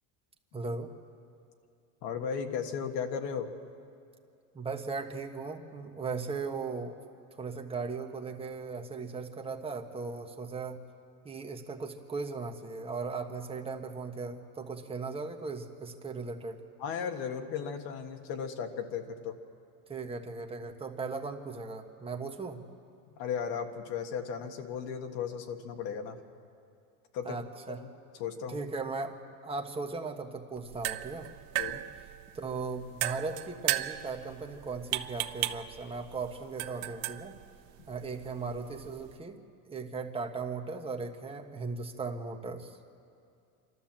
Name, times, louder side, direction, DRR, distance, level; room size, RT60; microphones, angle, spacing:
voice 1, 0.5-0.9 4.5-7.0 7.4-10.8 11.2-16.6 19.9-22.6 27.2-27.8 28.5-29.1 29.4-31.3 32.3-37.3 37.9-39.4 39.7-42.8, right 4 dB, 15° right, 3 dB, 1.3 m, -37 dB
voice 2, 2.0-3.5 16.8-19.4 23.2-26.2 27.1-27.4 27.7-27.8 28.1-28.7 31.6-31.8, left 7 dB, 60° left, 5 dB, 1.6 m, -36 dB
sound 1, 30.6-39.2, right 15 dB, 55° right, 0.8 m, -37 dB
27.5 x 12.5 x 7.4 m, 2.4 s
supercardioid pair, 135°, 41 cm